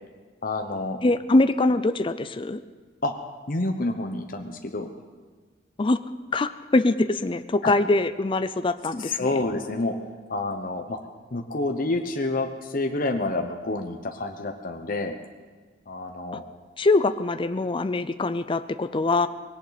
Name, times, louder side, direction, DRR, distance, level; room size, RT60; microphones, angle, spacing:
voice 1, 0.4-1.0 3.0-3.1 3.5-4.9 7.6-7.7 9.0-9.9 10.3-11.0 11.3-15.2 15.9-16.4, left 2 dB, 45° left, 4 dB, 1.0 m, -28 dB
voice 2, 1.0-2.6 5.8-6.0 6.3-9.3 16.8-19.3, left 2 dB, 25° left, 11 dB, 0.5 m, -23 dB
20.0 x 17.0 x 4.1 m, 1.4 s
head